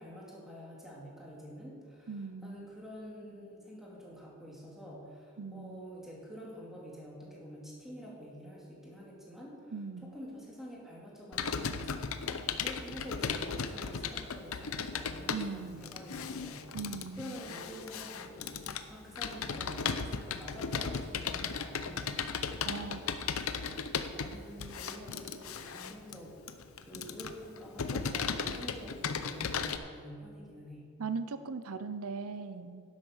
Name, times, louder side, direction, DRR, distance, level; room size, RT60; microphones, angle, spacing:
voice 1, 0.0-9.7 10.0-16.7 17.1-18.6 18.9-23.5 24.1-26.4 26.8-30.9, equal, ahead, -4 dB, 2.4 m, -47 dB
voice 2, 2.1-2.7 5.4-5.8 9.7-10.2 15.3-15.8 16.7-17.3 22.6-23.1 31.0-32.8, right 4 dB, 85° right, 11 dB, 0.6 m, -39 dB
Computer keyboard, 11.3-29.8, left 6 dB, 75° left, 0.7 m, -36 dB
10.5 x 8.4 x 6.4 m, 2.3 s
head